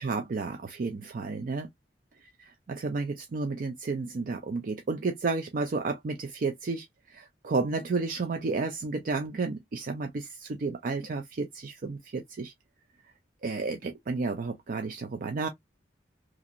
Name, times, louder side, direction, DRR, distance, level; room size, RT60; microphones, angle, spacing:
voice 1, 0.0-1.7 2.2-12.5 13.4-15.5, right 3 dB, 50° right, 0.4 m, -32 dB
2.9 x 2.5 x 2.6 m
head